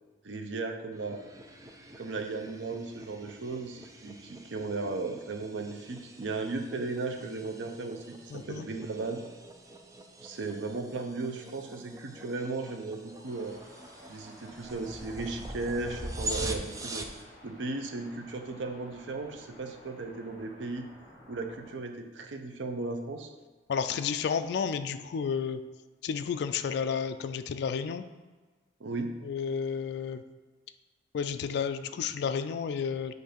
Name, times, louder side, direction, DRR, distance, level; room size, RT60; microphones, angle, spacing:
voice 1, 0.2-1.2 2.0-9.2 10.2-13.6 14.1-17.1 17.4-20.9 21.3-23.3 28.8-29.1, right 3 dB, 85° right, 5 dB, 0.6 m, -36 dB
sound 1, 0.9-17.2, right 1 dB, 20° right, 0.5 m, -43 dB
voice 2, 8.3-8.7 23.7-25.6 26.0-28.0 29.2-30.2 31.1-33.1, left 6 dB, 65° left, 8 dB, 0.3 m, -31 dB
sound 2, 13.2-21.8, equal, 25° left, 1.7 m, -54 dB
7.9 x 2.7 x 5.0 m, 1.3 s
head